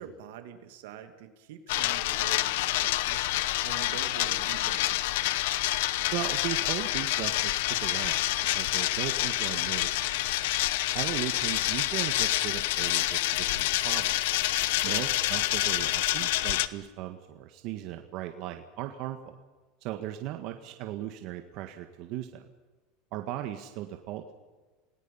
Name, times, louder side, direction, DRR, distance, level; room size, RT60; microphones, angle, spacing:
voice 1, 0.0-5.2 14.7-15.0, right 10 dB, 80° right, 7 dB, 2.6 m, -45 dB
sound 1, 1.7-16.7, left 16 dB, 80° left, 0.9 m, -28 dB
voice 2, 6.1-8.3 8.5-10.1 10.9-14.2 14.8-19.3 19.8-22.4 23.1-24.3, right 12 dB, 55° right, 5 dB, 1.6 m, -37 dB
28.0 x 18.5 x 5.6 m, 1.3 s
supercardioid pair, 140°, 0 cm